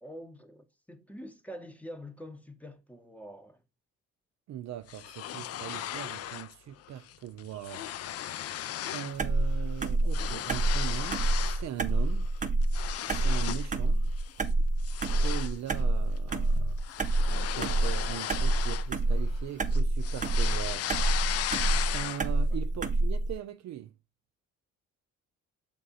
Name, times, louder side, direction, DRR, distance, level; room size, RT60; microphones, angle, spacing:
voice 1, 0.0-3.6 22.5-22.6, equal, 5° left, 0.8 m, -45 dB
voice 2, 4.5-7.9 8.9-12.3 13.0-14.1 15.2-16.8 17.6-20.9 21.9-23.9, right 11 dB, 65° right, 0.5 m, -40 dB
sound 1, 4.9-6.5 6.9-7.1 7.4-9.2 9.5-11.7 12.1-13.7 14.2-14.4 14.8-19.4 19.7-22.4, left 11 dB, 55° left, 0.4 m, -36 dB
sound 2, 9.2-23.4, right 2 dB, 25° right, 0.7 m, -27 dB
6.6 x 3.6 x 4.0 m
cardioid pair, 90°, 30 cm